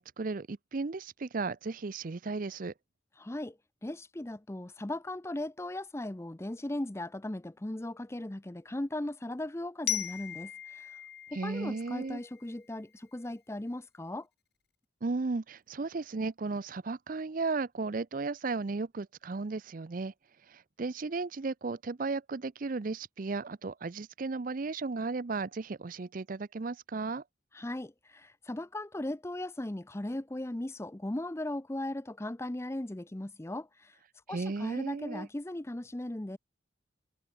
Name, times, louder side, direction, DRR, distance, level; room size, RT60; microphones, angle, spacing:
voice 1, 0.0-2.7 11.3-12.2 15.0-20.1 20.5-27.2 34.3-35.3, right 3 dB, 45° right, 0.5 m, -35 dB
voice 2, 3.2-11.0 11.3-14.3 27.5-33.9 34.3-36.4, left 1 dB, 15° left, 0.5 m, -38 dB
Glockenspiel, 9.9-12.7, left 11 dB, 55° left, 2.8 m, -38 dB
head